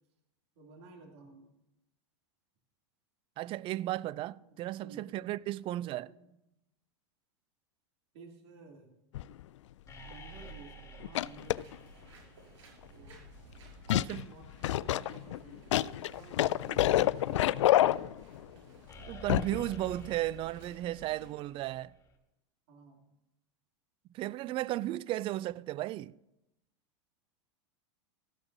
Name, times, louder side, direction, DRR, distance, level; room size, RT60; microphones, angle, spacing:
voice 1, 0.6-1.5 4.0-5.2 5.6-5.7 6.0-6.3 8.1-8.9 10.1-11.8 12.9-13.4 14.0-14.5 14.7-18.0 22.7-23.1, right 4 dB, 65° right, 2.7 m, -54 dB
voice 2, 3.4-6.1 13.9-14.3 17.0-17.1 19.1-21.9 24.1-26.2, right 15 dB, 35° right, 0.4 m, -35 dB
sound 1, 9.1-9.4 10.1-10.2 11.0-11.7 13.9-14.2 14.6-18.4 19.3-19.6 19.9-20.0, left 14 dB, 80° left, 0.4 m, -27 dB
sound 2, 9.9-13.1 18.9-22.1, equal, 20° left, 3.1 m, -50 dB
sound 3, 11.1-21.3, right 1 dB, 85° right, 5.9 m, -56 dB
17.0 x 13.5 x 2.7 m
hypercardioid pair, 115°, 15 cm